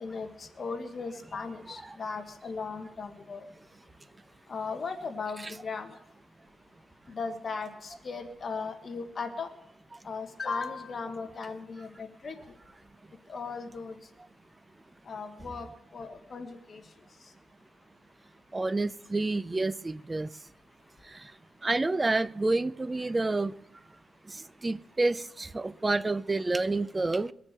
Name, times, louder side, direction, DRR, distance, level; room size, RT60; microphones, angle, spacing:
voice 1, 0.0-3.4 4.5-5.9 7.1-9.5 10.0-12.4 13.3-13.9 15.1-15.7 15.9-16.8, left 4 dB, 40° left, 1.5 m, -37 dB
voice 2, 18.5-20.3 21.6-23.5 24.6-27.3, right 2 dB, 20° right, 0.5 m, -28 dB
22.0 x 7.4 x 6.6 m
cardioid pair, 130°, 0 cm